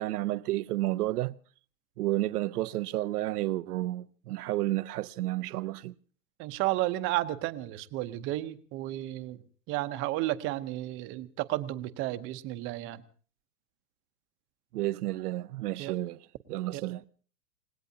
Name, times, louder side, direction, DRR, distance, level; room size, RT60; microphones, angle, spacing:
voice 1, 0.0-1.4 2.0-5.9 14.7-17.0, right 16 dB, 80° right, 0.7 m, -31 dB
voice 2, 6.4-9.4 9.7-13.0 15.8-15.9 16.7-16.8, right 16 dB, 30° right, 0.8 m, -32 dB
29.0 x 17.5 x 2.8 m
supercardioid pair, 150°, 45 cm